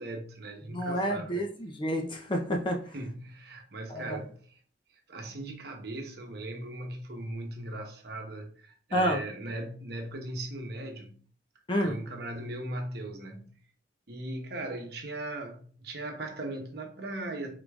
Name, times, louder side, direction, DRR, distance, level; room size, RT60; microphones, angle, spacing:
voice 1, 0.0-1.4 2.9-4.6 5.1-11.2 11.8-13.6 14.1-17.6, right 1 dB, 60° right, 0.9 m, -38 dB
voice 2, 0.7-2.8 3.9-4.2 8.9-9.2 11.7-12.0, equal, 25° left, 0.6 m, -29 dB
4.8 x 3.8 x 2.3 m
head